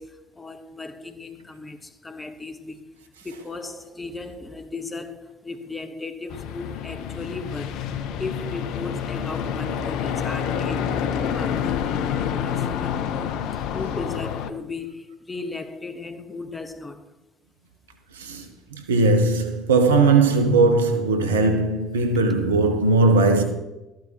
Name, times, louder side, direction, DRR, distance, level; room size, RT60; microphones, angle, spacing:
voice 1, 0.0-2.8 3.2-7.8 8.2-11.0 11.3-13.4 13.7-17.1, left 3 dB, 20° left, 1.3 m, -36 dB
sound 1, 6.3-14.5, left 8 dB, 60° left, 0.7 m, -28 dB
voice 2, 18.1-18.5 18.7-23.4, right 3 dB, 80° right, 1.1 m, -19 dB
13.5 x 11.5 x 2.9 m
hypercardioid pair, 55°, 0 cm